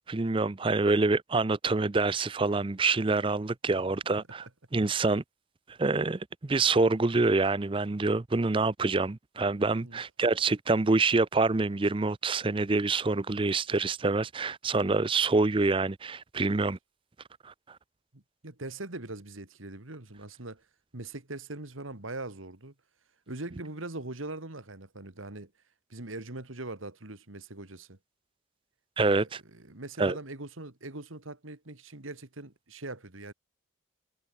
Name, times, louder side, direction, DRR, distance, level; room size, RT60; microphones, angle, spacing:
voice 1, 0.1-4.5 4.7-5.2 5.8-16.8 17.4-17.5 29.0-29.4 30.0-30.2, right 3 dB, 25° right, 0.5 m, -26 dB
voice 2, 18.1-20.6 20.9-22.7 23.3-25.5 25.9-28.0 29.0-29.2 29.5-33.3, right 2 dB, 75° right, 2.4 m, -41 dB
head